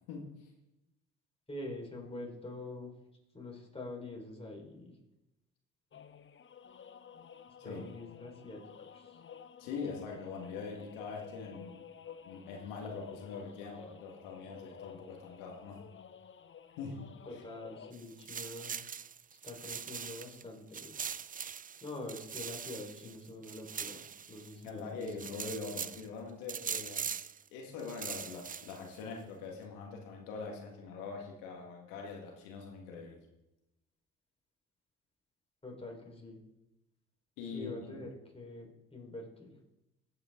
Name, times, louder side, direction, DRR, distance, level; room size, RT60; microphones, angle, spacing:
voice 1, 0.1-0.5 7.6-7.8 9.6-11.8 12.2-15.8 16.8-17.4 24.5-27.1 27.5-33.2 37.4-38.0, left 4 dB, 80° left, 1 dB, 1.8 m, -43 dB
voice 2, 1.5-2.9 3.3-5.0 7.6-8.6 8.9-9.2 17.3-18.7 19.4-21.2 21.8-25.1 35.6-36.4 37.5-39.5, left 2 dB, 20° left, -1 dB, 4.4 m, -45 dB
sound 1, 5.9-17.9, left 8 dB, 40° left, 0.9 m, -53 dB
sound 2, 17.9-20.4 20.7-24.7 25.0-26.0 26.5-27.4 27.8-29.0, right 7 dB, 25° right, 0.5 m, -42 dB
16.0 x 8.6 x 3.8 m, 0.93 s
hypercardioid pair, 50°, 32 cm